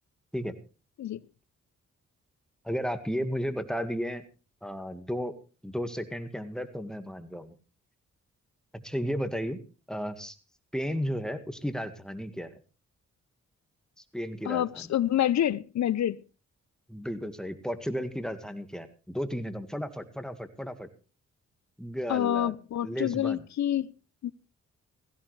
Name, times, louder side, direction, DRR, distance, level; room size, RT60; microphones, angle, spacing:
voice 1, 2.6-4.2 4.6-5.4 5.6-7.5 8.7-9.6 9.9-10.4 10.7-12.5 14.1-14.9 16.9-20.9 21.8-22.5 22.8-23.4, equal, ahead, 1.8 m, -33 dB
voice 2, 14.5-16.2 22.1-23.9 24.2-24.3, left 11 dB, 65° left, 0.7 m, -27 dB
16.0 x 16.0 x 3.3 m
cardioid pair, 80°, 29 cm